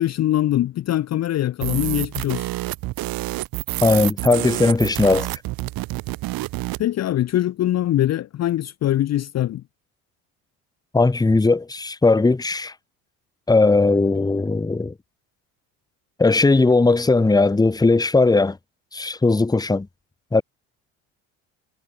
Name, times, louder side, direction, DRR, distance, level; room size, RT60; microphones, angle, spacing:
voice 1, 0.0-2.5 6.8-9.6, left 13 dB, 45° left, 0.7 m, -22 dB
sound 1, 1.6-6.8, right 18 dB, 65° right, 2.2 m, -28 dB
voice 2, 3.8-5.3 10.9-12.7 13.5-14.9 16.2-18.6 18.9-19.9 20.3-20.4, left 3 dB, 10° left, 1.0 m, -18 dB
hypercardioid pair, 70°, 38 cm